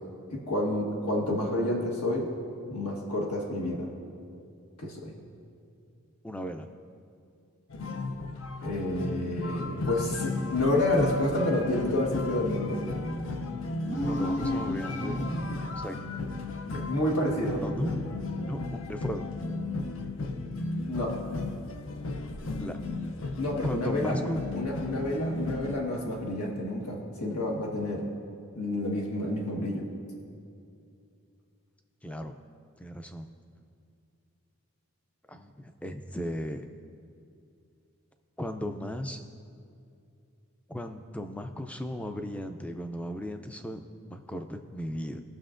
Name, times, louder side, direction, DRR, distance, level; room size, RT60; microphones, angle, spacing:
voice 1, 0.3-2.3 2.7-3.9 4.8-5.1 8.6-12.8 16.7-17.6 20.9-21.2 23.4-24.1 24.5-28.0 28.5-29.8, left 1 dB, 80° left, -2 dB, 1.4 m, -29 dB
voice 2, 6.2-6.7 14.0-15.2 15.7-16.0 17.5-18.0 18.5-19.3 22.6-22.8 23.6-24.4 32.0-32.3 32.8-33.3 35.3-36.6 38.4-39.2 40.7-43.8 44.1-45.2, equal, 5° left, 7 dB, 0.3 m, -36 dB
sound 1, 7.7-25.8, left 3 dB, 65° left, 0.5 m, -34 dB
sound 2, 13.8-15.8, equal, 35° left, 1.2 m, -32 dB
19.0 x 6.5 x 2.5 m, 2.5 s
head